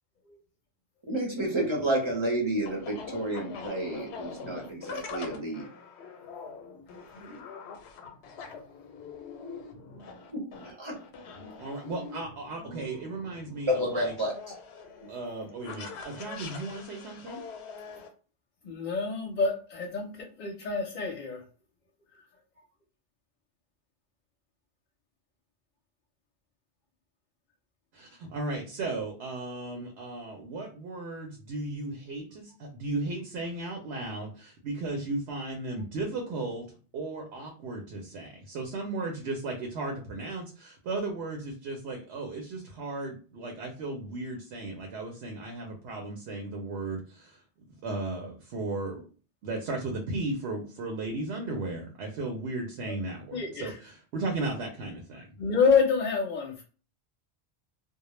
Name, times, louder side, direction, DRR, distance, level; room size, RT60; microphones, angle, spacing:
voice 1, 1.1-5.7 7.3-7.4 10.6-11.0 13.8-14.3, right 1 dB, 30° right, -1 dB, 0.6 m, -31 dB
sound 1, 1.5-18.1, left 4 dB, 90° left, 0.8 m, -44 dB
voice 2, 11.6-14.1 15.1-17.4 27.9-36.6 36.9-47.4 47.8-49.0 49.4-55.3, right 2 dB, 80° right, 2 dB, 0.9 m, -35 dB
voice 3, 18.6-20.1 20.4-21.4 52.9-53.0 53.3-53.7 55.4-56.6, left 5 dB, 55° left, 1 dB, 0.6 m, -27 dB
2.2 x 2.0 x 3.0 m, 0.37 s
omnidirectional pair, 1.1 m